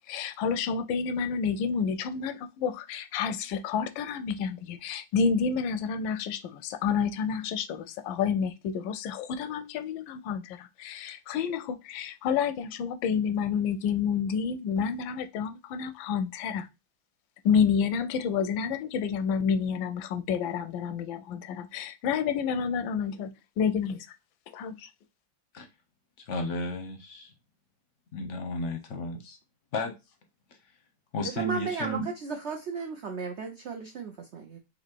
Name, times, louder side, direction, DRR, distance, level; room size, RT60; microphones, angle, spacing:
voice 1, 0.1-16.7 17.4-24.1 24.5-24.9, left 6 dB, 90° left, 1.3 m, -29 dB
voice 2, 26.3-27.3 28.1-29.4 29.7-29.9 31.1-32.1, left 1 dB, 60° left, 0.8 m, -33 dB
voice 3, 31.2-34.6, right 4 dB, 85° right, 0.6 m, -35 dB
4.0 x 2.7 x 4.4 m
omnidirectional pair, 2.0 m